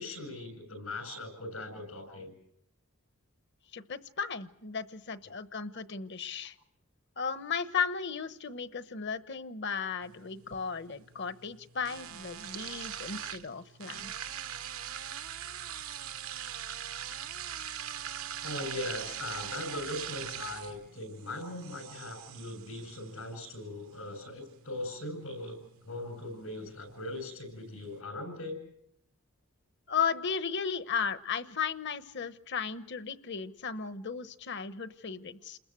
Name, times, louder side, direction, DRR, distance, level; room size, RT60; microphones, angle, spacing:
voice 1, 0.0-2.3 18.4-28.6, left 2 dB, 85° left, 9 dB, 8.0 m, -40 dB
voice 2, 3.7-6.5 7.2-14.1 29.9-35.6, left 6 dB, 55° left, 13 dB, 1.1 m, -35 dB
sound 1, 10.0-28.0, right 9 dB, 85° right, 1.1 m, -43 dB
29.0 x 21.5 x 7.7 m, 0.72 s
head